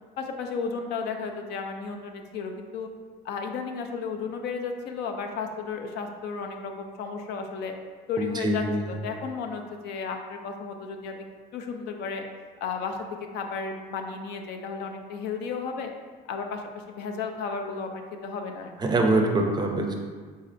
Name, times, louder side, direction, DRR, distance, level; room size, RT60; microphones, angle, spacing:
voice 1, 0.2-2.9 3.2-7.7 8.1-11.2 11.5-12.2 12.6-13.1 13.3-15.9 16.3-18.7, left 5 dB, 75° left, 4 dB, 0.4 m, -33 dB
voice 2, 8.2-8.8 18.8-19.9, right 2 dB, 25° right, 2 dB, 0.4 m, -24 dB
3.7 x 3.2 x 2.5 m, 1.5 s
cardioid pair, 110°, 17 cm